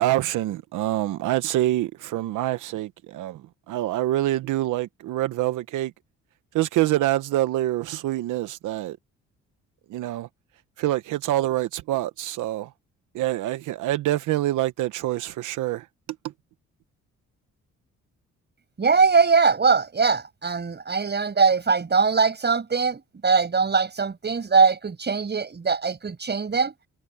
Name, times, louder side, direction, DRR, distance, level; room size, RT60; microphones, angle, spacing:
voice 1, 0.0-3.4 3.7-5.9 6.5-9.0 9.9-10.3 10.8-12.7 13.1-15.9, right 15 dB, 85° right, 1.0 m, -25 dB
voice 2, 18.8-26.7, right 5 dB, 35° right, 6.3 m, -21 dB
cardioid pair, 90°, 30 cm